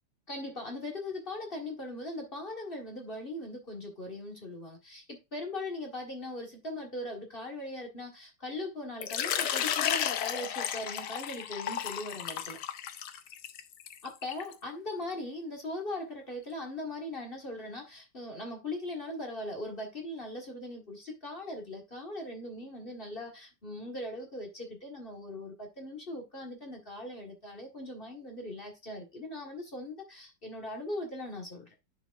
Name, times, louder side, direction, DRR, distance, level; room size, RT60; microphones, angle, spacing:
voice 1, 0.3-12.6 14.0-31.7, left 1 dB, 35° left, 1.7 m, -40 dB
Water / Liquid, 9.0-14.5, left 9 dB, 75° left, 1.3 m, -33 dB
10.5 x 4.8 x 2.5 m
omnidirectional pair, 1.8 m